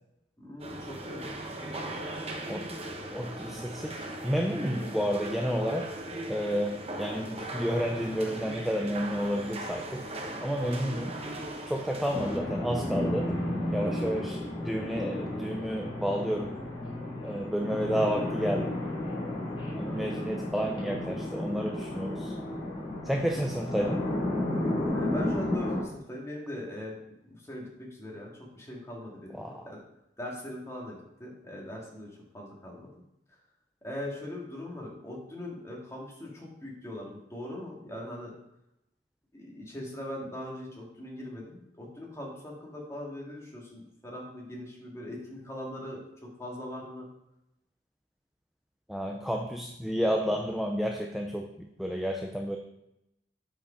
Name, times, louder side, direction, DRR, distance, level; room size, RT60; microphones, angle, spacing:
voice 1, 0.4-1.2 1.8-1.9 19.8-20.1 24.9-27.0 27.3-29.8 30.2-32.1 32.3-32.9 33.8-38.3 39.3-46.0 46.4-47.1, left 1 dB, 15° left, -3 dB, 2.0 m, -40 dB
sound 1, 0.6-12.4, right 1 dB, 35° right, 1.0 m, -39 dB
voice 2, 3.1-5.9 6.3-10.1 10.4-11.3 11.7-13.3 13.7-16.5 17.2-18.8 19.8-22.3 23.0-24.1 29.3-29.7 48.9-52.6, equal, ahead, 2 dB, 0.5 m, -31 dB
sound 2, 12.1-25.8, left 1 dB, 30° left, 3.0 m, -32 dB
7.9 x 5.0 x 5.0 m, 0.85 s
head